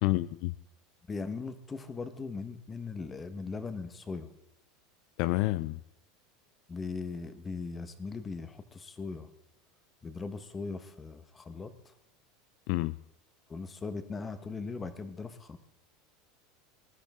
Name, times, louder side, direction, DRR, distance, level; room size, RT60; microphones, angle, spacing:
voice 1, 0.0-0.5 5.2-5.8 12.7-13.0, left 19 dB, 60° left, 0.4 m, -28 dB
voice 2, 1.1-4.3 6.7-9.3 10.0-11.9 13.5-15.6, left 4 dB, 15° left, 1.2 m, -39 dB
21.0 x 11.5 x 3.7 m
supercardioid pair, 140°, 0 cm